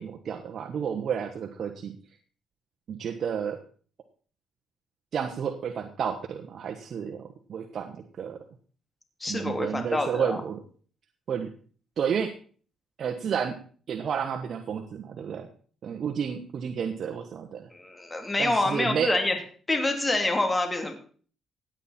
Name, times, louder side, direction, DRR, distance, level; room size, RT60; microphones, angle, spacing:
voice 1, 0.0-1.9 2.9-3.6 5.1-8.4 9.3-10.6 11.3-11.5 12.0-12.4 13.0-13.6 13.9-15.5 15.8-17.7 18.4-19.1, right 7 dB, 60° right, 4 dB, 1.2 m, -31 dB
voice 2, 9.2-10.4 17.7-19.4 19.7-20.9, left 2 dB, 20° left, 4 dB, 3.1 m, -26 dB
16.5 x 8.9 x 4.4 m, 0.44 s
cardioid pair, 90°, 0 cm